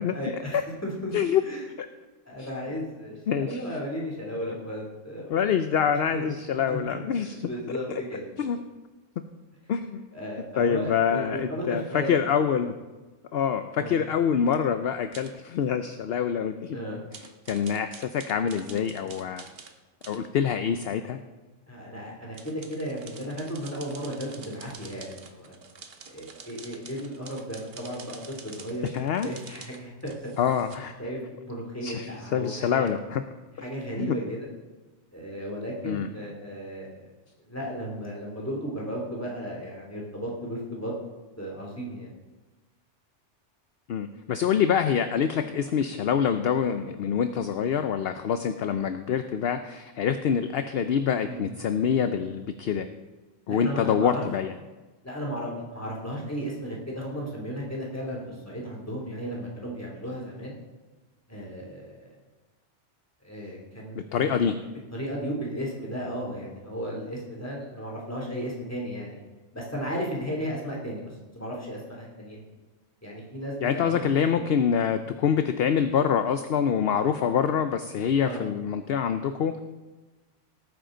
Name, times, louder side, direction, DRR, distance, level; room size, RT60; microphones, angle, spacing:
voice 1, 0.1-1.1 1.4-1.6 2.2-5.4 6.1-6.3 6.7-6.8 7.1-8.5 10.1-12.2 13.8-14.0 16.7-17.0 21.7-25.5 26.0-28.9 29.2-30.3 31.0-33.0 33.6-34.5 35.1-37.1 37.4-40.9 41.4-42.1 51.2-51.4 53.5-54.2 55.0-60.6 61.3-62.1 63.2-64.3 64.9-69.2 69.5-72.4 73.0-74.4 78.2-78.4, equal, 10° left, -3 dB, 3.0 m, -35 dB
voice 2, 3.3-3.6 5.3-7.3 8.4-8.6 9.7-10.1 10.6-12.7 13.3-16.8 17.5-19.5 20.1-21.2 28.8-29.3 30.4-30.9 31.8-33.2 33.6-33.7 34.0-34.1 35.9-36.1 43.9-52.9 53.5-54.5 64.1-64.5 73.6-79.6, left 7 dB, 60° left, 9 dB, 0.8 m, -26 dB
sound 1, 15.1-15.3 17.1-19.7 20.0-20.2 22.3-30.8, right 5 dB, 55° right, 1.2 m, -47 dB
18.0 x 9.3 x 3.9 m, 1.2 s
omnidirectional pair, 1.3 m